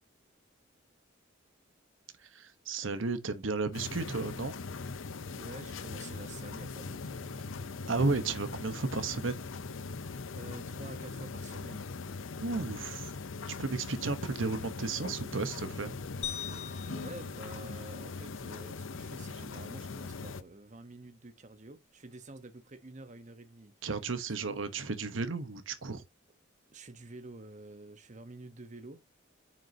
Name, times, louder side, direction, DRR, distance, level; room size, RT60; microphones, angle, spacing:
voice 1, 2.2-4.5 7.9-9.4 12.4-13.1 13.5-15.9 23.8-26.0, right 3 dB, 85° right, 1.0 m, -33 dB
sound 1, 3.7-20.4, left 4 dB, 85° left, 0.7 m, -41 dB
voice 2, 5.4-7.6 10.3-11.9 16.9-23.8 24.4-24.5 26.7-29.0, right 2 dB, 40° right, 1.0 m, -49 dB
sound 2, 16.2-18.6, left 10 dB, 35° left, 1.7 m, -43 dB
9.1 x 6.3 x 2.8 m
head